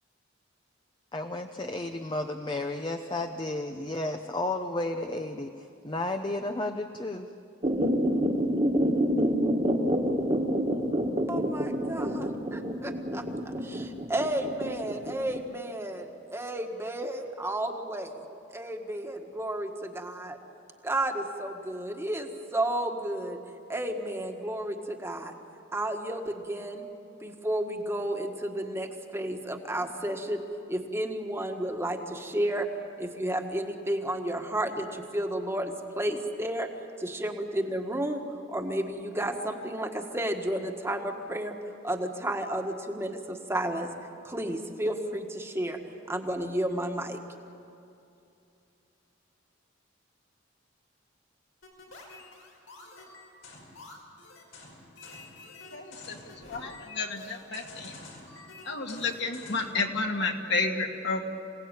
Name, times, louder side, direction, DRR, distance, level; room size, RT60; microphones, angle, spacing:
voice 1, 1.1-7.3, left 2 dB, 25° left, 5 dB, 0.8 m, -33 dB
sound 1, 7.6-15.4, equal, 30° right, 1.8 m, -27 dB
voice 2, 11.3-18.2 18.5-20.4 20.8-23.4 23.7-25.3 25.7-26.9 27.2-30.4 30.7-32.7 33.0-36.7 37.0-38.2 38.5-41.6 41.8-43.9 44.2-45.8 46.1-47.2, right 1 dB, 15° right, 3 dB, 1.7 m, -32 dB
sound 2, 51.6-59.8, left 2 dB, 90° left, 5.6 m, -48 dB
voice 3, 55.7-56.2 56.5-58.0 58.7-61.3, left 3 dB, 60° left, 2 dB, 2.3 m, -31 dB
27.5 x 18.0 x 9.1 m, 2.7 s
head